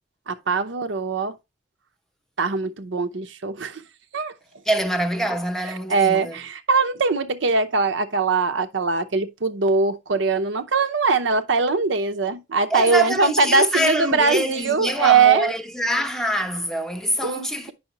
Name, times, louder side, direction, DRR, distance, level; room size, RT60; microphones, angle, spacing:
voice 1, 0.3-1.3 2.4-3.8 4.1-4.3 5.9-15.5 17.2-17.7, right 4 dB, 80° right, 0.8 m, -21 dB
voice 2, 4.7-6.4 12.7-17.7, equal, 5° left, 0.7 m, -25 dB
8.5 x 5.6 x 2.9 m
head